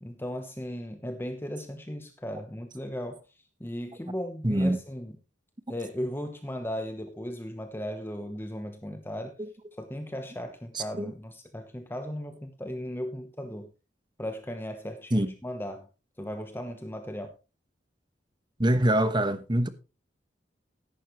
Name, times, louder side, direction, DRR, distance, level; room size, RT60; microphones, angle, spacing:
voice 1, 0.0-5.1 5.7-9.4 9.8-13.7 14.2-15.9 16.2-17.4, equal, 10° left, 1.0 m, -36 dB
voice 2, 4.4-4.8 9.4-9.5 10.7-11.1 15.1-15.3 18.6-19.7, right 1 dB, 25° right, 1.2 m, -24 dB
14.0 x 11.0 x 3.1 m
head